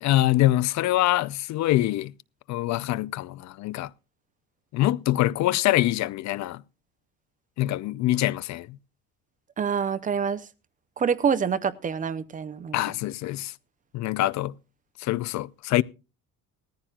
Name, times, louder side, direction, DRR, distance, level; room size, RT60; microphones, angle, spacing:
voice 1, 0.0-2.1 2.5-3.9 4.7-6.6 7.6-8.8 12.7-13.5 13.9-14.6 15.0-15.8, left 15 dB, 50° left, 0.5 m, -24 dB
voice 2, 9.6-10.4 11.0-12.8, right 6 dB, 20° right, 0.6 m, -26 dB
19.0 x 14.5 x 2.3 m
cardioid pair, 165°, 36 cm